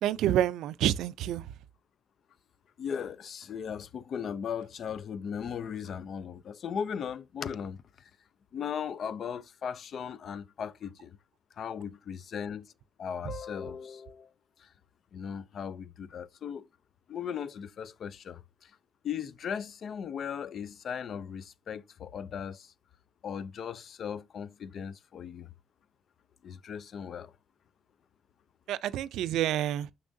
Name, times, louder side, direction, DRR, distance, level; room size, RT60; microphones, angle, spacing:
voice 1, 0.0-1.5 28.7-29.9, right 12 dB, 85° right, 0.4 m, -28 dB
voice 2, 2.8-7.8 8.5-11.2 11.6-12.7 13.0-14.3 14.6-14.7 15.1-16.7 17.1-18.7 19.0-22.7 23.2-25.5 26.4-27.3, left 7 dB, 60° left, 0.4 m, -37 dB
6.9 x 5.3 x 2.6 m
cardioid pair, 90°, 0 cm